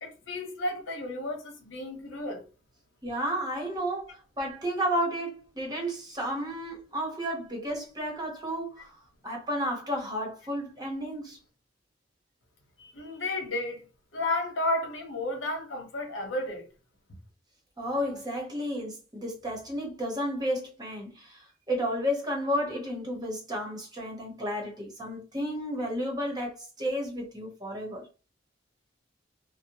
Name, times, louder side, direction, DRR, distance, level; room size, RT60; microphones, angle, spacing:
voice 1, 0.0-2.4 12.8-13.9 14.1-16.6, left 1 dB, 80° left, 1.0 m, -32 dB
voice 2, 3.0-11.4 17.8-28.1, equal, 20° right, 0.9 m, -32 dB
2.7 x 2.1 x 2.9 m
head